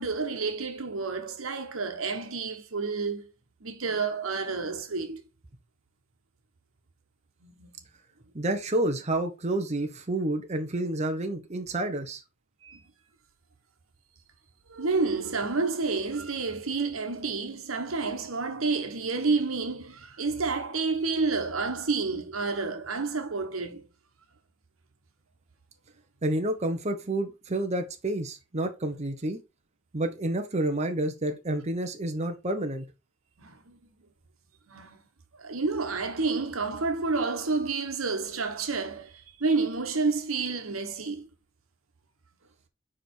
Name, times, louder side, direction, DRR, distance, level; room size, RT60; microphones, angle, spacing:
voice 1, 0.0-3.3 3.6-5.2 7.4-7.7 12.6-12.8 14.7-23.8 33.4-33.8 34.7-35.0 35.3-41.3, right 4 dB, 85° right, 1.2 m, -29 dB
voice 2, 8.3-12.2 26.2-29.4 29.9-32.8, right 1 dB, 35° right, 0.9 m, -29 dB
5.0 x 4.8 x 4.4 m
head